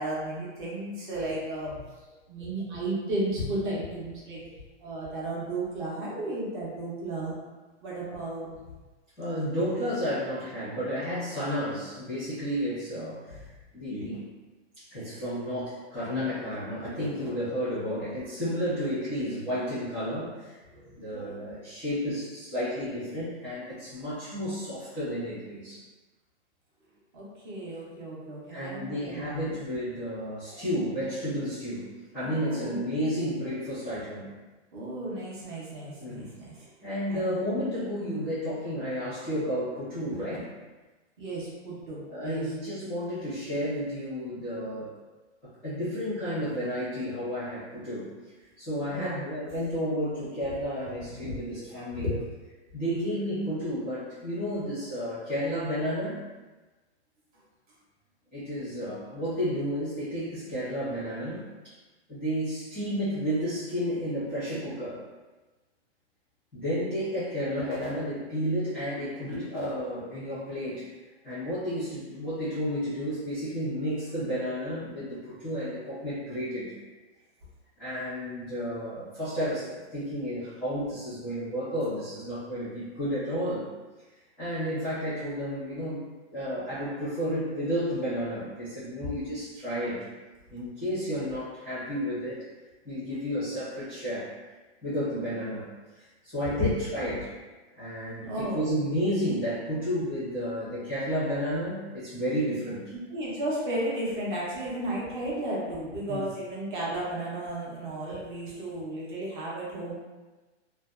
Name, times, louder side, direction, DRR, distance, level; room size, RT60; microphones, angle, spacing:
voice 1, 0.0-1.8 2.3-4.4 4.8-7.3 7.8-8.5 20.7-21.3 27.1-29.5 32.2-33.0 34.7-36.7 37.1-37.4 41.2-42.5 48.9-49.2 51.2-52.1 96.4-96.7 98.2-98.7 103.1-109.9, right 1 dB, 45° right, -5 dB, 0.8 m, -34 dB
voice 2, 9.2-13.4 13.7-14.3 14.8-20.6 21.0-25.8 28.5-34.3 36.0-36.3 36.8-40.5 42.1-45.0 45.4-48.1 48.6-52.1 52.7-56.2 58.3-61.8 62.1-65.0 66.5-70.9 71.2-76.7 77.8-83.7 84.4-86.0 86.3-90.0 90.5-92.4 92.8-94.3 94.8-95.7 95.9-97.3 97.7-102.9 106.1-106.2, equal, 5° left, -16 dB, 0.4 m, -32 dB
2.6 x 2.2 x 2.3 m, 1.2 s
hypercardioid pair, 165°, 35 cm